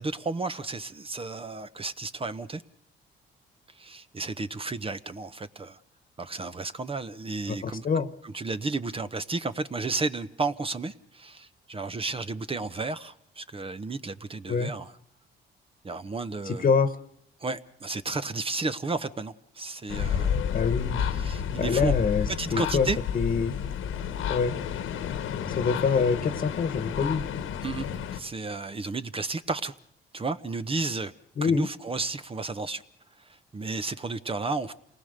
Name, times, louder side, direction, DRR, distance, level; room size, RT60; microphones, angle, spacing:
voice 1, 0.0-2.6 3.7-5.8 6.2-7.9 8.2-14.9 15.8-16.7 17.4-20.4 21.0-21.9 22.3-23.0 27.6-29.7 30.1-31.1 31.4-32.8 33.3-34.7, right 3 dB, 30° right, 1.0 m, -33 dB
voice 2, 7.5-8.1 14.5-14.7 16.4-16.9 20.5-21.0 21.5-22.9 23.1-23.5 24.3-24.5 25.5-27.2 31.4-31.7, left 5 dB, 45° left, 1.4 m, -25 dB
sound 1, 19.9-28.2, left 8 dB, 90° left, 1.6 m, -30 dB
27.5 x 19.5 x 6.7 m
cardioid pair, 90°, 20 cm